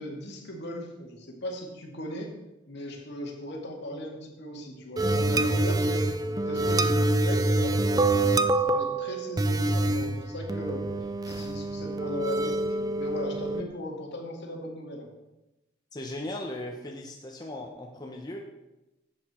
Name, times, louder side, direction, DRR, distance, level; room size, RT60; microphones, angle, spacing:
voice 1, 0.0-2.3 2.7-6.1 6.5-10.9 11.2-12.6 13.0-15.1, equal, 60° left, 0 dB, 2.2 m, -37 dB
sound 1, 5.0-13.6, right 2 dB, 20° right, 0.4 m, -26 dB
voice 2, 15.9-18.4, left 1 dB, 20° left, 0 dB, 0.9 m, -37 dB
11.0 x 8.0 x 4.4 m, 0.98 s
head